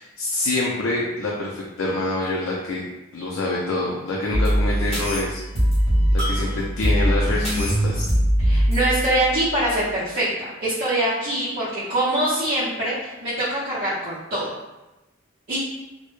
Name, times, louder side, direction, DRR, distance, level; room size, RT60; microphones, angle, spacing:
voice 1, 0.0-2.8 3.1-5.4 6.1-8.1, left 2 dB, 75° left, -3 dB, 0.4 m, -26 dB
sound 1, 4.3-10.0, equal, 30° left, 0.8 m, -22 dB
voice 2, 8.4-14.5 15.5-15.7, right 1 dB, 45° right, -12 dB, 0.6 m, -24 dB
2.0 x 2.0 x 3.0 m, 1.0 s
head